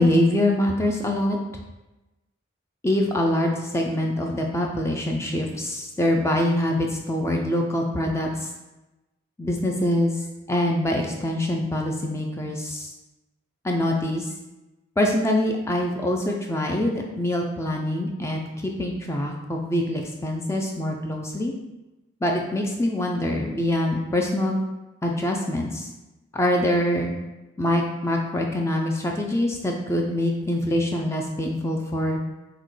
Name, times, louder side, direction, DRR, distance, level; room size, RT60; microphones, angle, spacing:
voice 1, 0.0-1.4 2.8-8.5 9.4-10.1 10.5-12.9 13.6-14.3 15.0-21.5 22.2-24.6 25.0-25.9 26.3-27.1 27.6-32.2, left 1 dB, 15° left, 1 dB, 0.3 m, -24 dB
5.8 x 2.2 x 3.1 m, 1.0 s
head